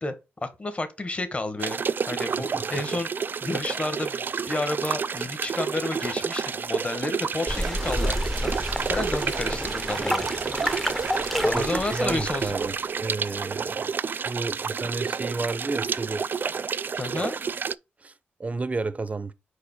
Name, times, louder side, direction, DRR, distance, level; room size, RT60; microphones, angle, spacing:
voice 1, 0.4-3.1 3.4-8.5 8.9-10.3 11.4-12.5 14.8-14.9 16.9-17.4, left 2 dB, 30° left, 1.3 m, -31 dB
sound 1, 1.6-17.7, right 6 dB, 50° right, 0.3 m, -30 dB
voice 2, 2.4-2.8 11.5-13.9 14.2-16.2 17.2-17.3 18.0-18.1 18.4-19.3, right 3 dB, 35° right, 0.7 m, -31 dB
sound 2, 7.5-12.8, equal, 5° left, 0.8 m, -29 dB
5.1 x 4.5 x 4.3 m
cardioid pair, 70°, 4 cm